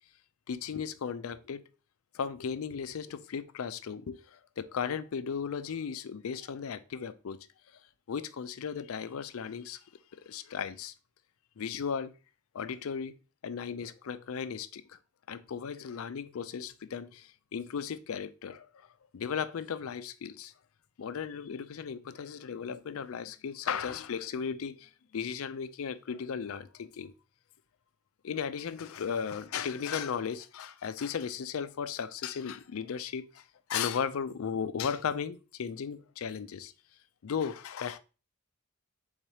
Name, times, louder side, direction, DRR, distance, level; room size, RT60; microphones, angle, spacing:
voice 1, 0.5-1.6 2.1-7.5 8.1-9.8 10.3-10.9 11.6-12.1 12.5-13.1 13.4-15.0 15.3-18.9 19.1-20.5 21.0-27.1 28.2-33.4 33.7-36.7 37.2-38.0, left 7 dB, 75° left, 0.4 m, -36 dB
4.0 x 2.8 x 4.7 m
head